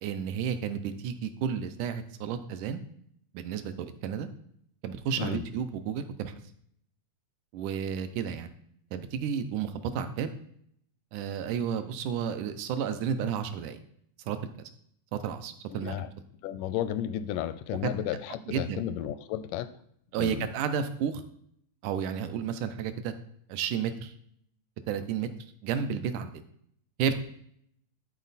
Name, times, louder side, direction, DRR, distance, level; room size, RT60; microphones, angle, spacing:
voice 1, 0.0-2.8 3.3-4.3 4.8-6.3 7.5-8.5 8.9-10.3 11.1-13.8 14.3-14.4 15.1-16.1 18.5-18.8 20.1-21.2 21.8-23.1 23.5-24.1 24.9-25.3 25.6-26.3 27.0-27.2, right 7 dB, 80° right, 9 dB, 2.1 m, -32 dB
voice 2, 15.7-16.1 16.4-19.7 20.2-20.5, left 10 dB, 85° left, 13 dB, 2.1 m, -33 dB
12.0 x 4.2 x 4.0 m, 0.68 s
omnidirectional pair, 3.7 m